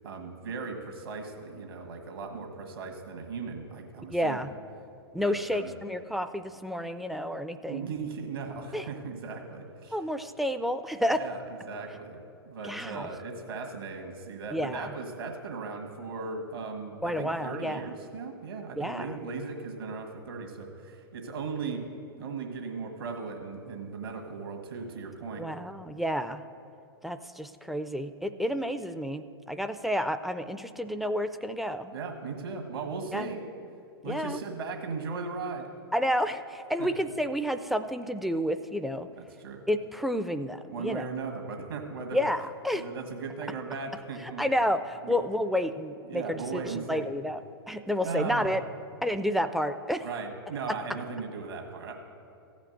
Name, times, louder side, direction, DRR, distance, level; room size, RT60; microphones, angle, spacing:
voice 1, 0.0-4.4 5.2-5.7 7.7-10.0 11.1-11.4 11.6-21.8 22.2-25.5 31.9-33.4 34.0-35.7 36.8-36.9 39.2-39.6 40.7-42.2 42.7-44.4 45.0-45.1 46.1-47.1 48.0-48.5 50.0-51.9, right 4 dB, 65° right, 3 dB, 1.7 m, -37 dB
voice 2, 4.1-4.5 5.1-7.9 8.7-8.9 9.9-11.2 12.6-13.1 14.5-14.9 17.0-17.8 18.8-19.2 25.4-26.4 27.0-31.9 33.1-33.3 34.0-34.4 35.9-39.1 39.7-41.0 42.1-42.8 44.2-48.6 49.0-50.0, equal, ahead, 11 dB, 0.4 m, -30 dB
15.0 x 5.2 x 7.8 m, 2.6 s
figure-of-eight pair, 105°, 13 cm